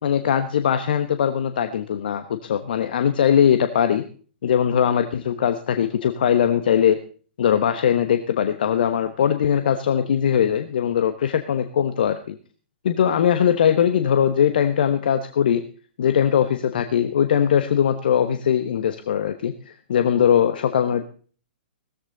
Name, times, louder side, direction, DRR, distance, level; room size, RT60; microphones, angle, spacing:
voice 1, 0.0-4.1 4.4-7.0 7.4-12.4 12.8-15.6 16.0-21.0, left 9 dB, 55° left, 9 dB, 1.1 m, -20 dB
17.0 x 14.0 x 4.0 m, 0.42 s
figure-of-eight pair, 115°, 6 cm